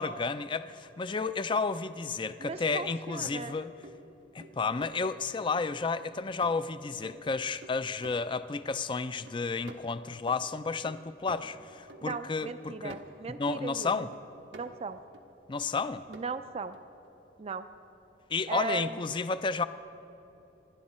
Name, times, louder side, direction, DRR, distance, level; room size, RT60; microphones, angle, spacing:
voice 1, 0.0-3.7 4.3-13.0 13.4-14.1 15.5-16.0 18.3-19.6, left 4 dB, 25° left, 13 dB, 0.4 m, -32 dB
sound 1, 2.3-2.4 2.9-5.6 6.0-8.8 9.1-13.7 14.1-15.2 15.7-16.2 16.7-16.8, right 2 dB, 85° right, 1.2 m, -51 dB
voice 2, 2.4-3.6 12.0-14.1 14.5-15.0 16.1-16.8 17.4-17.7 18.5-19.0, right 4 dB, 35° right, 11 dB, 0.4 m, -37 dB
26.5 x 11.5 x 4.3 m, 3.0 s
head